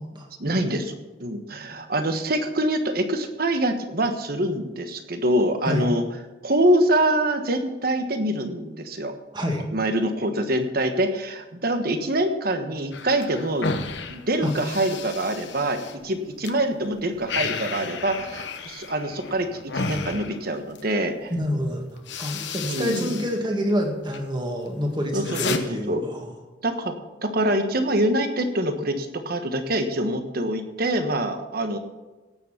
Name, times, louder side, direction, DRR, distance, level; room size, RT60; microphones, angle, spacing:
voice 1, 0.4-6.0 6.4-9.1 9.7-13.7 14.1-21.3 22.6-23.2 25.1-26.0 26.6-26.9 27.2-31.8, right 1 dB, 50° right, 7 dB, 1.4 m, -25 dB
voice 2, 9.3-9.6 14.4-14.5 21.3-26.3, equal, 25° right, 2 dB, 2.1 m, -27 dB
sound 1, 12.9-16.5 16.9-20.9 21.6-21.7 22.0-23.4 23.7-24.2 24.7-25.6, left 4 dB, 70° left, 1.1 m, -33 dB
17.0 x 7.2 x 5.9 m, 1.2 s
head